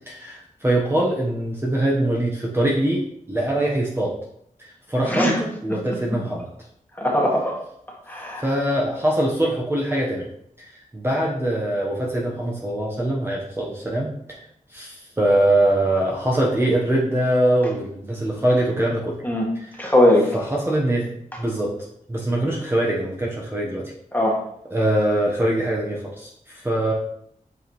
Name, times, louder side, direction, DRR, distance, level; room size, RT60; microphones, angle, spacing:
voice 1, 0.1-4.2 4.6-6.5 8.4-10.3 10.6-14.4 14.7-19.1 19.5-19.8 20.3-21.1 21.4-23.9 24.7-26.9, right 1 dB, 15° right, -3 dB, 1.0 m, -23 dB
voice 2, 7.0-7.6 8.1-8.4 19.2-19.5 19.8-20.3 24.1-24.4, left 1 dB, 15° left, -2 dB, 1.6 m, -19 dB
8.0 x 4.9 x 3.1 m, 0.72 s
wide cardioid pair, 120°, 14 cm